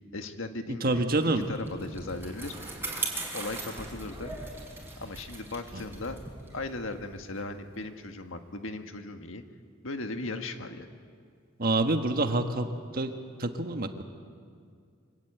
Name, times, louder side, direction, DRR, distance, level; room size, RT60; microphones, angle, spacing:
voice 1, 0.1-1.0 1.3-2.5 3.3-4.3 5.0-6.2 6.5-9.4 9.8-10.9, left 2 dB, 75° left, 6 dB, 1.6 m, -37 dB
voice 2, 0.8-1.5 11.6-12.7 12.9-13.1 13.4-14.0, right 2 dB, 45° right, 6 dB, 1.5 m, -26 dB
Bicycle, 1.2-7.9, right 2 dB, 10° right, 5.0 m, -40 dB
25.0 x 17.0 x 9.3 m, 2.2 s
head